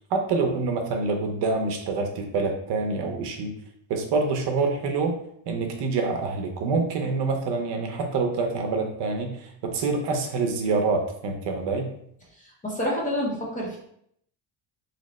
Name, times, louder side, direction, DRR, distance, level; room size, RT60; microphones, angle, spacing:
voice 1, 0.1-3.5 3.9-5.2 5.5-11.9, right 4 dB, 65° right, 3 dB, 0.6 m, -26 dB
voice 2, 12.6-13.8, equal, 20° left, -4 dB, 0.6 m, -27 dB
2.8 x 2.0 x 4.0 m, 0.69 s
cardioid pair, 165°, 45 cm